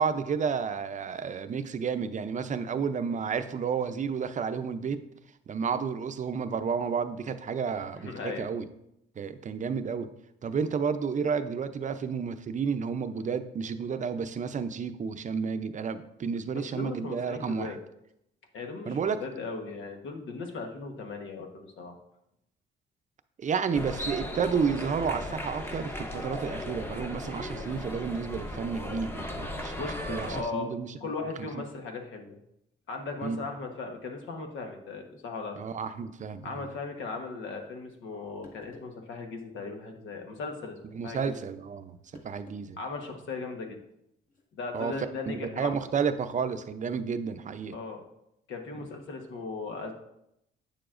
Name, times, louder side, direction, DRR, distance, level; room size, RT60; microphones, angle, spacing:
voice 1, 0.0-5.0 5.5-8.7 9.2-10.1 10.4-17.7 18.9-19.2 23.4-30.9 31.4-31.6 33.2-33.4 35.6-36.7 40.9-42.0 42.2-42.8 44.7-44.9 45.3-47.8 48.7-48.8, right 6 dB, 40° right, 10 dB, 0.6 m, -31 dB
voice 2, 8.0-8.5 16.7-17.8 18.5-22.0 23.7-23.9 29.8-30.7 31.0-32.4 32.9-35.6 36.4-40.8 41.0-41.3 42.8-43.8 44.5-45.7 47.7-48.0 48.5-49.9, left 4 dB, 75° left, 3 dB, 1.3 m, -37 dB
sound 1, 23.7-30.4, left 1 dB, 10° left, 0.9 m, -37 dB
sound 2, 38.1-38.2 38.4-39.0 40.4-40.6 42.1-42.7 43.0-43.1 44.3-44.4, left 2 dB, 40° left, 1.7 m, -53 dB
8.9 x 6.9 x 2.5 m, 0.81 s
cardioid pair, 90°, 20 cm